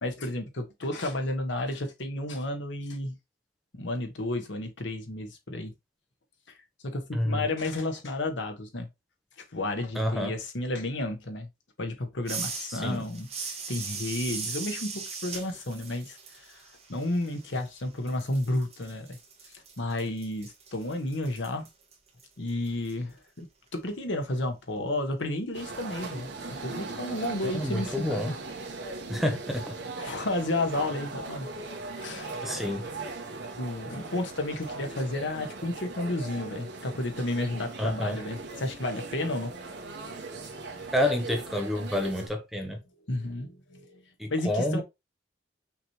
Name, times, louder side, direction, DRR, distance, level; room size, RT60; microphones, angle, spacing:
voice 1, 0.0-3.2 3.7-5.7 6.8-8.9 9.5-11.5 11.8-13.3 13.7-16.2 16.5-16.6 16.9-19.2 19.8-21.6 22.4-23.5 23.7-26.3 26.6-28.3 30.0-31.5 31.9-32.5 33.6-39.5 43.1-44.0 44.3-44.8, left 1 dB, 75° left, 1.1 m, -32 dB
voice 2, 7.1-7.4 10.0-10.4 12.7-13.1 27.5-28.3 29.1-29.8 32.4-32.9 37.8-38.2 40.9-42.8 44.2-44.8, left 1 dB, ahead, 0.7 m, -28 dB
sound 1, 12.3-17.8 18.1-22.9, right 5 dB, 35° right, 1.4 m, -39 dB
sound 2, 25.5-42.3, right 3 dB, 60° right, 1.1 m, -39 dB
5.8 x 3.1 x 2.9 m
head